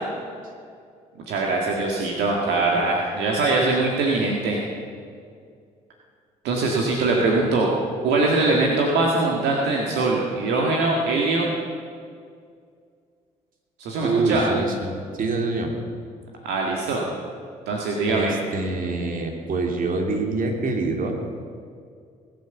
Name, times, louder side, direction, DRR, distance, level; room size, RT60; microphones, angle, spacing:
voice 1, 1.3-4.6 6.4-7.7 8.0-11.5 13.8-14.4 16.4-17.0 17.7-18.3, right 3 dB, 75° right, -1 dB, 1.8 m, -22 dB
voice 2, 14.0-15.7 18.1-21.1, right 3 dB, 50° right, 2 dB, 3.0 m, -25 dB
20.5 x 9.4 x 7.0 m, 2.2 s
hypercardioid pair, 55°, 18 cm